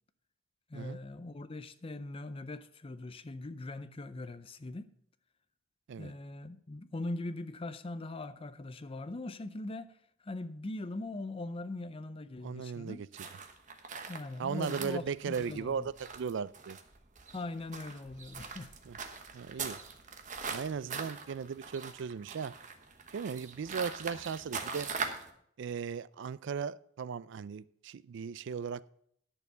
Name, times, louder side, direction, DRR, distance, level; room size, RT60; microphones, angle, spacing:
voice 1, 0.7-4.9 6.0-9.9 10.2-13.0 14.1-15.9 17.3-18.8, left 2 dB, 30° left, 0.5 m, -41 dB
voice 2, 12.4-13.1 14.4-16.8 18.8-19.0 19.3-19.8 20.5-22.5 23.1-24.9 25.6-28.8, right 6 dB, 65° right, 0.4 m, -37 dB
sound 1, 13.1-25.3, right 5 dB, 40° right, 1.1 m, -42 dB
11.0 x 6.8 x 5.5 m
head